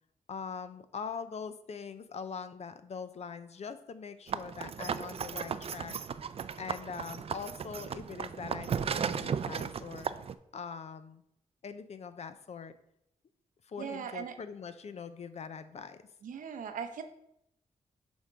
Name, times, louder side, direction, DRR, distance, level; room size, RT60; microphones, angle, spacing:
voice 1, 0.3-5.9 6.6-10.1 10.5-11.2 11.6-12.7 13.6-16.0, left 6 dB, 55° left, 11 dB, 0.6 m, -42 dB
sound 1, 4.3-10.3, right 7 dB, 45° right, 0.4 m, -36 dB
voice 2, 13.8-14.3 16.2-17.0, right 7 dB, 80° right, 7 dB, 0.7 m, -39 dB
7.1 x 3.7 x 5.0 m, 0.76 s
cardioid pair, 75°, 14 cm